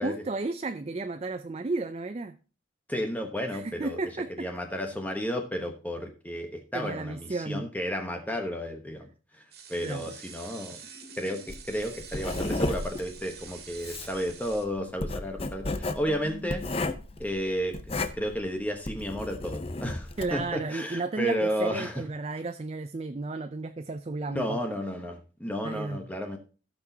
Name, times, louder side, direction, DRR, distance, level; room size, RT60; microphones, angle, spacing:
voice 1, 0.0-2.3 3.5-4.5 6.7-7.6 9.8-10.1 20.2-24.6 25.6-26.0, right 3 dB, 30° right, 0.4 m, -33 dB
voice 2, 2.9-4.0 4.4-9.4 9.7-10.8 11.2-16.6 17.2-17.8 18.1-22.0 24.3-26.4, equal, 10° left, 1.0 m, -32 dB
sound 1, 9.5-14.6, right 7 dB, 55° right, 2.0 m, -47 dB
sound 2, 10.7-12.1 15.7-17.5, left 2 dB, 90° left, 3.7 m, -49 dB
Writing, 11.5-20.4, left 2 dB, 30° left, 0.7 m, -33 dB
16.5 x 6.1 x 2.8 m
head